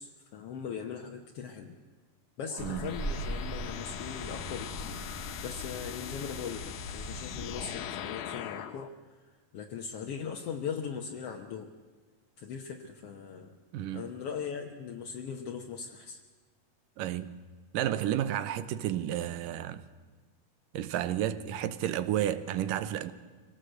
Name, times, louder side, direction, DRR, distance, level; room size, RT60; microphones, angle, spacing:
voice 1, 0.0-1.8 2.4-5.0 5.4-8.9 9.5-11.7 12.4-13.6 13.9-16.2, left 7 dB, 65° left, 1.6 m, -39 dB
sound 1, 2.5-8.9, left 9 dB, 85° left, 2.9 m, -41 dB
sound 2, 2.6-7.6, right 1 dB, 5° right, 3.1 m, -41 dB
voice 2, 2.6-3.0 13.7-14.1 17.0-17.4 17.7-19.9 20.7-23.1, right 11 dB, 75° right, 2.5 m, -31 dB
24.5 x 18.0 x 7.9 m
omnidirectional pair, 4.0 m